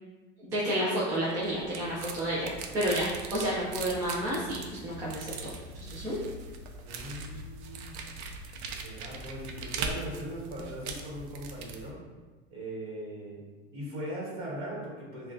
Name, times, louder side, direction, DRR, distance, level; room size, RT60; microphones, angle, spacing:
voice 1, 0.4-5.5 5.8-6.2, equal, 10° right, -8 dB, 0.3 m, -31 dB
sound 1, 1.1-11.9, right 4 dB, 85° right, 0.5 m, -40 dB
voice 2, 6.8-8.0 8.6-12.0 12.5-13.4 13.7-15.3, right 1 dB, 40° right, -5 dB, 1.3 m, -40 dB
5.8 x 2.2 x 2.6 m, 1.3 s
supercardioid pair, 160°, 33 cm